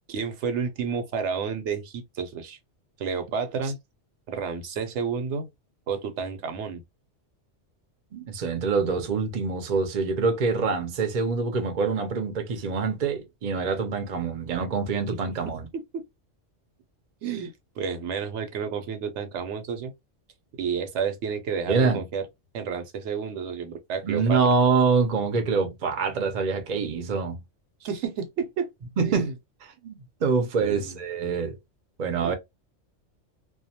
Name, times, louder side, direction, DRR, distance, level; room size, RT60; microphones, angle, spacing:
voice 1, 0.0-2.6 3.0-3.8 4.3-5.5 5.9-6.8 15.7-16.0 17.2-19.9 20.6-22.2 22.5-24.4 27.8-28.7 29.0-29.3 30.6-31.0 32.2-32.3, right 6 dB, 75° right, 0.9 m, -31 dB
voice 2, 8.1-15.7 21.7-22.0 24.0-27.4 29.0-29.3 29.8-31.6 32.0-32.3, right 5 dB, 50° right, 0.6 m, -25 dB
2.3 x 2.2 x 2.7 m
omnidirectional pair, 1.2 m